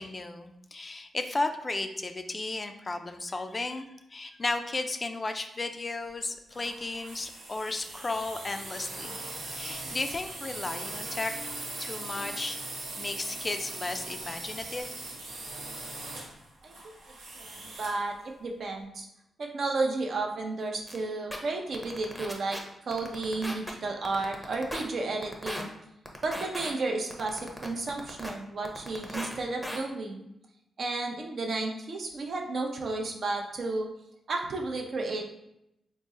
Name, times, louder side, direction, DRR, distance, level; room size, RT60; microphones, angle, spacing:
voice 1, 0.0-9.2 9.5-11.3 11.8-12.6 13.0-14.9, left 2 dB, 30° left, 7 dB, 0.3 m, -34 dB
sound 1, 6.5-18.1, right 2 dB, 90° right, 0.9 m, -40 dB
voice 2, 16.6-16.9 17.4-18.1 18.4-19.1 19.4-25.7 26.2-30.3 30.8-33.9 34.3-35.3, right 3 dB, 60° right, 2 dB, 0.6 m, -32 dB
sound 2, 20.9-21.0 21.3-21.4 21.7-22.6 22.9-23.7 24.0-24.8 25.2-25.6 26.1-26.7 27.1-28.3 28.6-29.3 29.6-29.8, equal, ahead, 0.6 m, -36 dB
3.8 x 2.0 x 3.7 m, 0.83 s
cardioid pair, 85°, 0 cm